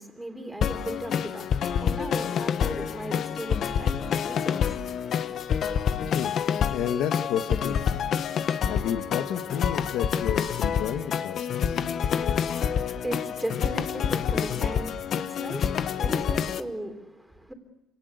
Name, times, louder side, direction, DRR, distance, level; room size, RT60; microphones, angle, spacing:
voice 1, 0.0-5.6 12.9-17.5, right 1 dB, 5° right, 3.5 m, -37 dB
sound 1, 0.6-16.6, left 8 dB, 55° left, 1.1 m, -27 dB
voice 2, 6.0-8.1 8.6-11.8, left 9 dB, 85° left, 1.5 m, -31 dB
28.5 x 18.5 x 8.2 m
cardioid pair, 135°, 0 cm